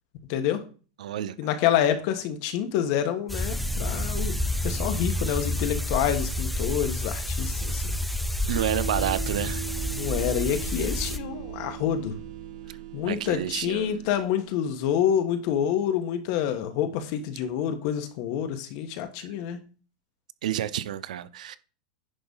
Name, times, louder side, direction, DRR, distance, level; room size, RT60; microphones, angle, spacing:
voice 1, 0.3-0.6 1.4-4.4 4.6-8.0 9.9-12.1 12.9-19.6, left 9 dB, 45° left, 1.4 m, -27 dB
voice 2, 1.0-1.3 8.5-9.7 13.0-14.1 20.4-21.6, right 11 dB, 85° right, 0.7 m, -30 dB
sound 1, 3.3-11.2, left 1 dB, ahead, 0.5 m, -29 dB
sound 2, 8.5-14.4, right 12 dB, 55° right, 1.2 m, -38 dB
10.0 x 3.9 x 5.6 m
supercardioid pair, 165°, 4 cm